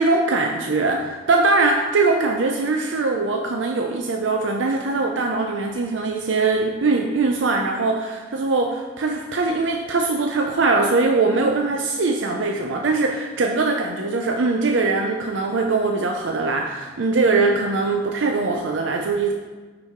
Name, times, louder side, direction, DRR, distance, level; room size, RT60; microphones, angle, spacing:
voice 1, 0.0-19.3, right 3 dB, 80° right, 2 dB, 0.6 m, -21 dB
9.4 x 4.6 x 4.5 m, 1.3 s
head